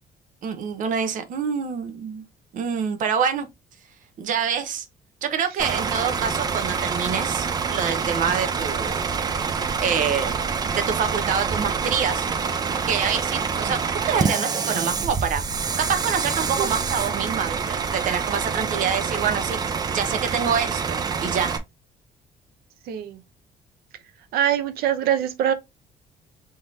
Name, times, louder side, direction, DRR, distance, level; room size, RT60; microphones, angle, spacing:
voice 1, 0.4-2.2 2.5-3.5 4.2-4.8 5.2-9.1 9.8-10.3 10.7-12.3 12.9-15.4 15.8-19.6 19.9-21.5, right 7 dB, 60° right, 0.9 m, -26 dB
Bus / Idling, 5.6-21.6, right 5 dB, 25° right, 0.6 m, -26 dB
voice 2, 22.9-23.2 24.3-25.5, right 10 dB, 80° right, 0.7 m, -23 dB
4.5 x 3.6 x 2.7 m
cardioid pair, 160°, 15 cm